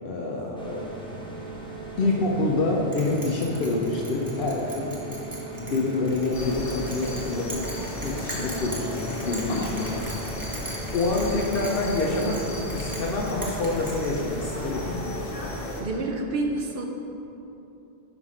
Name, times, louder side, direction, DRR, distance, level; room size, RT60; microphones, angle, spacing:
voice 1, 0.0-0.9 2.0-5.0 5.6-7.6 8.0-9.9 10.9-12.4 12.7-15.2, left 2 dB, 65° left, -2 dB, 0.8 m, -27 dB
Bathroom Fan Ventilator, 0.6-14.9, right 2 dB, 5° left, 0.7 m, -39 dB
Bell, 2.9-14.6, right 1 dB, 20° right, 0.9 m, -40 dB
sound 1, 6.3-15.8, left 1 dB, 40° left, 0.8 m, -34 dB
voice 2, 15.8-16.9, right 2 dB, 65° right, 2 dB, 0.9 m, -28 dB
5.7 x 4.8 x 4.9 m, 2.9 s
omnidirectional pair, 1.0 m